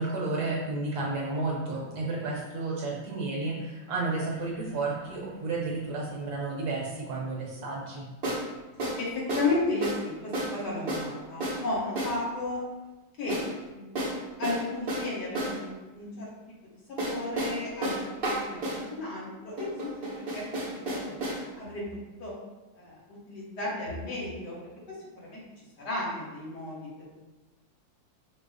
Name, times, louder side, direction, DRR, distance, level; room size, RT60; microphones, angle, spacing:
voice 1, 0.0-8.1, right 3 dB, 60° right, -3 dB, 1.3 m, -32 dB
sound 1, 4.3-4.4 8.2-8.5 8.8-9.0 9.3-9.5 9.8-10.0 10.3-10.6 10.9-11.1 11.4-11.6 12.0-12.2 13.3-13.5 14.0-15.6 17.0-18.8 19.6-21.4, right 1 dB, 45° right, 0.7 m, -31 dB
voice 2, 9.0-12.6 13.2-13.4 13.7-16.3 17.0-19.7 20.0-21.1 21.5-21.8 22.2-22.3 22.7-24.5 24.9-25.0 25.2-25.4 25.8-26.8, left 2 dB, 65° left, -5 dB, 1.6 m, -34 dB
5.1 x 2.0 x 3.9 m, 1.2 s
omnidirectional pair, 2.0 m